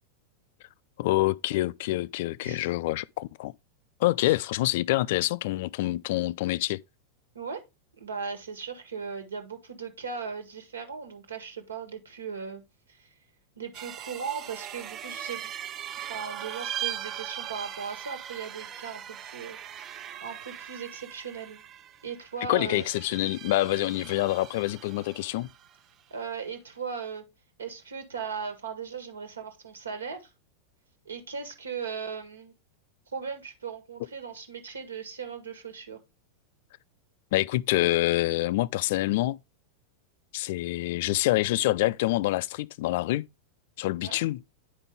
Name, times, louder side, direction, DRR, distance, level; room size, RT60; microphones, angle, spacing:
voice 1, 1.0-3.5 4.0-6.8 22.5-25.5 37.3-39.4 40.3-43.3 43.8-44.4, left 17 dB, 50° left, 0.3 m, -26 dB
voice 2, 2.4-2.7 4.2-4.4 7.4-7.6 8.0-12.6 12.9-13.1 13.6-15.5 16.0-19.6 20.2-21.6 22.0-22.9 26.1-27.2 27.6-30.3 31.1-32.5 33.1-36.0 44.0-44.2, right 6 dB, 70° right, 1.8 m, -38 dB
sound 1, 13.7-25.8, right 10 dB, 30° right, 0.6 m, -40 dB
9.9 x 5.2 x 3.5 m
figure-of-eight pair, 90°, 0 cm